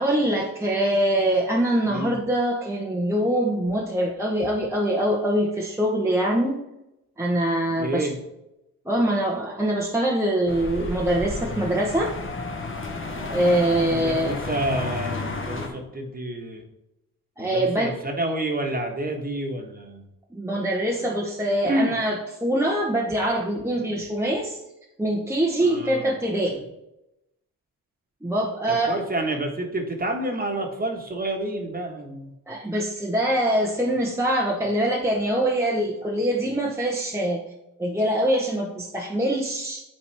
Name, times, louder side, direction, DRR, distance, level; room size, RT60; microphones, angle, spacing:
voice 1, 0.0-6.6 7.2-8.1 8.8-12.1 13.3-14.3 17.4-17.9 20.3-24.6 25.0-26.6 28.2-29.0 32.5-37.4 37.8-39.8, right 1 dB, 10° right, -3 dB, 1.0 m, -24 dB
voice 2, 1.8-2.2 7.7-8.2 13.9-16.6 17.4-20.1 21.6-21.9 25.6-26.1 26.5-26.6 28.7-32.3, right 1 dB, 25° right, 2 dB, 1.5 m, -29 dB
sound 1, 10.5-15.7, left 3 dB, 35° left, 1.3 m, -32 dB
8.6 x 4.1 x 3.4 m, 0.90 s
cardioid pair, 75°, 35 cm